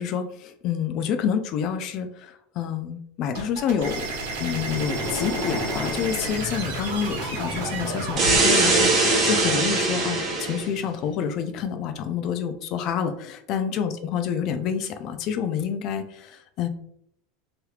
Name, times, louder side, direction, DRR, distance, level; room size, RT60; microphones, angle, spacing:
voice 1, 0.0-4.1 4.4-16.7, left 7 dB, 45° left, 8 dB, 0.4 m, -28 dB
sound 1, 3.3-8.4, right 3 dB, 85° right, 1.2 m, -32 dB
Motorcycle, 3.9-11.8, left 1 dB, 30° left, 1.0 m, -36 dB
sound 2, 8.2-10.6, right 3 dB, 25° right, 0.8 m, -21 dB
3.2 x 2.9 x 2.4 m, 0.70 s
supercardioid pair, 155°, 0 cm